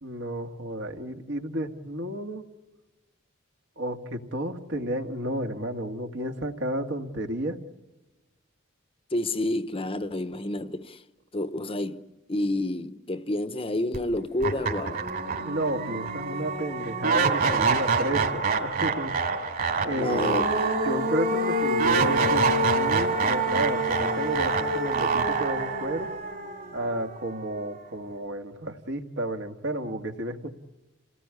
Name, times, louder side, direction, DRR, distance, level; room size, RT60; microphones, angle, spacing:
voice 1, 0.0-2.4 3.8-7.6 15.4-19.5 19.8-20.4 20.9-26.1 26.7-30.5, right 1 dB, 60° right, 2.0 m, -32 dB
voice 2, 9.1-11.0 11.3-15.1 19.9-20.4, left 1 dB, 25° left, 0.9 m, -29 dB
sound 1, 13.9-14.0 14.4-27.5, right 3 dB, 45° right, 3.4 m, -26 dB
28.5 x 18.5 x 9.8 m
head